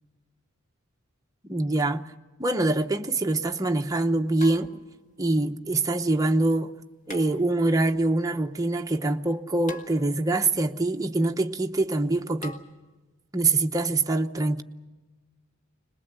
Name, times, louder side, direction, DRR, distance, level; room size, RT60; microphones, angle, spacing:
voice 1, 1.5-2.0 2.4-4.8 5.2-6.7 7.1-12.6 13.3-14.6, right 2 dB, 15° right, 0.8 m, -24 dB
sound 1, 3.0-3.1 4.4-5.1 7.1-7.8 9.7-10.5 12.4-12.6, left 2 dB, 35° left, 2.0 m, -43 dB
22.5 x 20.5 x 8.0 m
head